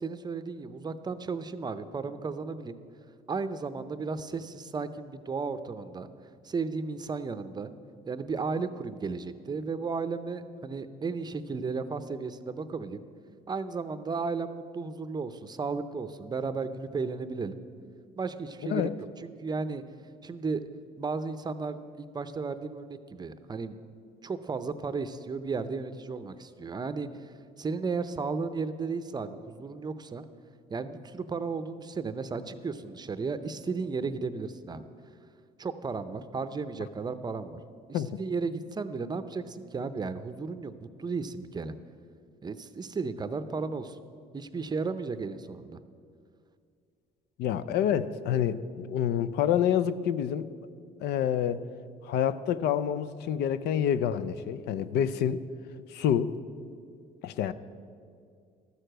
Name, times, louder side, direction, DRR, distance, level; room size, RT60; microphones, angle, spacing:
voice 1, 0.0-2.8 3.3-6.1 6.4-7.7 8.1-13.0 13.5-17.5 18.2-18.9 19.2-19.8 20.2-20.6 21.0-23.8 24.2-30.2 30.7-34.9 35.6-37.6 37.9-41.7 42.4-44.0 44.3-45.8, right 4 dB, 25° right, 11 dB, 0.6 m, -34 dB
voice 2, 47.4-50.5 51.0-51.6 52.0-55.4 55.9-56.4 57.2-57.5, left 9 dB, 80° left, 14 dB, 0.5 m, -27 dB
13.0 x 6.6 x 7.8 m, 2.3 s
cardioid pair, 110°, 17 cm